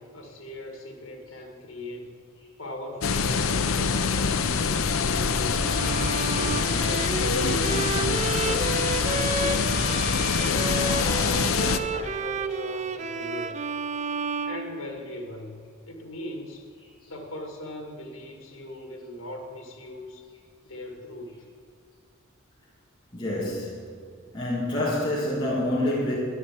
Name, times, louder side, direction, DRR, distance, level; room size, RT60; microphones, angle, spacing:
voice 1, 0.0-2.1 2.6-5.7 6.0-9.7 10.1-11.0 11.6-13.6 14.4-16.7 17.1-20.3 20.6-21.5, left 1 dB, 70° left, 3 dB, 2.3 m, -39 dB
sound 1, 3.0-11.8, left 5 dB, 85° left, 0.7 m, -25 dB
Bowed string instrument, 5.6-15.3, right 4 dB, 35° right, 0.4 m, -31 dB
voice 2, 23.1-24.0 24.3-26.1, left 1 dB, 20° left, -7 dB, 2.2 m, -27 dB
11.5 x 11.0 x 7.6 m, 2.2 s
head